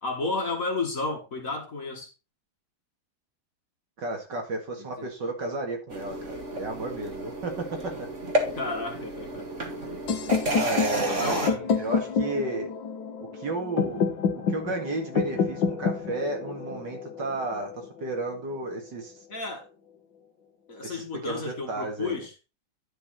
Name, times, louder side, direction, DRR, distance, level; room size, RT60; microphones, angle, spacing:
voice 1, 0.0-2.1 4.8-5.1 8.5-9.5 10.9-11.6 19.3-19.7 20.7-22.3, left 3 dB, 40° left, 2 dB, 2.0 m, -32 dB
voice 2, 4.0-8.1 10.5-12.7 13.3-14.1 14.5-19.1 20.8-22.2, right 2 dB, 60° right, 3 dB, 2.5 m, -33 dB
sound 1, 5.9-11.5, right 1 dB, 35° right, 2.1 m, -31 dB
sound 2, 10.1-18.0, left 6 dB, 65° left, 1.8 m, -28 dB
11.0 x 5.6 x 4.1 m, 0.29 s
omnidirectional pair, 2.3 m